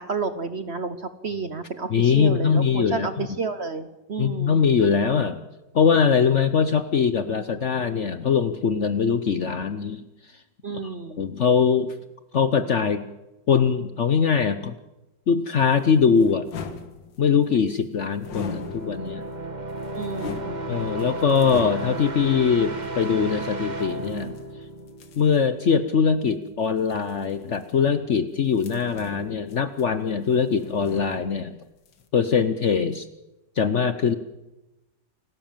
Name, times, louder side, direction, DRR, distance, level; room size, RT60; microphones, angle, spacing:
voice 1, 0.0-4.7 10.6-11.2 19.9-20.8, right 4 dB, 45° right, 11 dB, 1.0 m, -31 dB
voice 2, 1.9-3.1 4.2-5.4 5.7-10.0 10.8-10.9 11.2-11.9 12.3-13.0 13.5-14.7 15.3-16.5 17.2-19.3 20.7-24.3 25.2-31.6 32.1-33.1 33.6-34.1, left 6 dB, 50° left, 11 dB, 0.9 m, -22 dB
sound 1, 15.6-17.5 18.2-19.3 19.7-22.2 22.8-22.9 23.8-25.4 26.8-28.2 28.5-30.2 30.4-31.6 31.9-32.1, left 5 dB, 80° left, 2.2 m, -40 dB
sound 2, 17.9-25.7, right 2 dB, 25° right, 1.4 m, -34 dB
28.5 x 12.5 x 7.3 m, 0.99 s
omnidirectional pair, 1.9 m